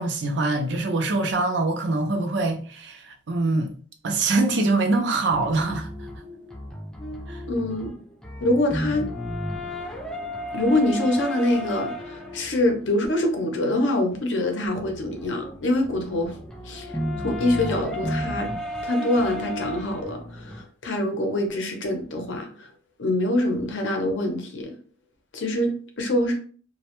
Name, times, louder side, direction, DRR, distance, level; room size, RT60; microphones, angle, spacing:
voice 1, 0.0-3.7 4.0-5.9 7.3-7.4, right 3 dB, 75° right, 0.5 m, -24 dB
sound 1, 5.3-20.6, equal, 5° left, 0.4 m, -34 dB
voice 2, 7.5-7.9 8.4-9.1 10.5-16.4 16.6-16.9 17.2-18.5 18.8-22.7 23.0-24.8 25.3-26.3, left 1 dB, 85° left, 0.6 m, -25 dB
2.1 x 2.1 x 2.9 m
head